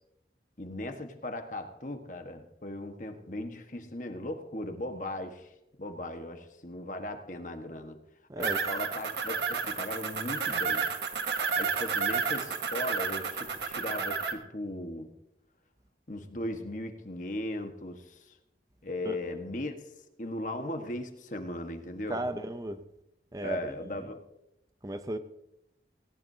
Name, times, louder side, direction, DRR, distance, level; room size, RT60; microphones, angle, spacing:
voice 1, 0.6-5.5 5.8-8.0 8.4-10.9 11.5-15.1 16.1-18.4 18.8-19.7 20.2-22.2 23.4-24.2, left 1 dB, 45° left, 6 dB, 1.4 m, -38 dB
voice 2, 8.3-8.6 19.0-19.2 22.1-22.8 23.3-24.0 24.8-25.2, right 1 dB, 20° right, 9 dB, 0.6 m, -35 dB
sound 1, 8.4-14.3, right 5 dB, 80° right, 1.5 m, -31 dB
18.5 x 18.0 x 2.8 m, 0.86 s
head